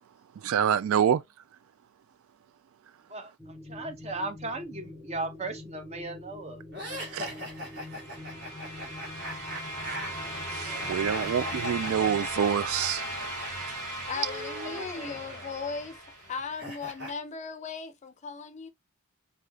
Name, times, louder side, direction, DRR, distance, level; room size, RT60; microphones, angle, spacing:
voice 1, 0.4-1.2 7.1-7.3 10.5-13.1, right 8 dB, 65° right, 0.3 m, -26 dB
voice 2, 3.1-6.6 8.6-8.9 9.8-10.1 10.6-11.1 14.5-15.2, right 2 dB, 30° right, 0.6 m, -38 dB
sound 1, 3.4-12.2, left 2 dB, 10° right, 2.3 m, -46 dB
sound 2, 6.7-13.5 13.8-17.1, equal, 50° right, 2.5 m, -41 dB
sound 3, 7.7-16.6, right 1 dB, 85° right, 1.7 m, -37 dB
voice 3, 14.1-16.0 16.3-18.7, left 5 dB, 30° left, 0.4 m, -37 dB
4.8 x 2.7 x 2.2 m
head